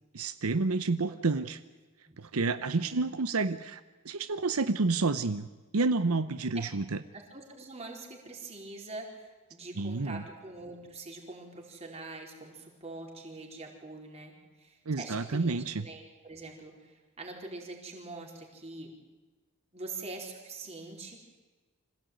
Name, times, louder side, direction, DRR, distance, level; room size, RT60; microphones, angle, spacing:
voice 1, 0.1-1.6 2.2-5.5 5.7-7.0 9.8-10.2 14.9-15.8, right 3 dB, 85° right, 11 dB, 0.8 m, -29 dB
voice 2, 2.5-3.0 7.1-18.9 19.7-21.4, right 2 dB, 30° right, 1 dB, 4.5 m, -44 dB
26.0 x 16.5 x 9.3 m, 1.3 s
head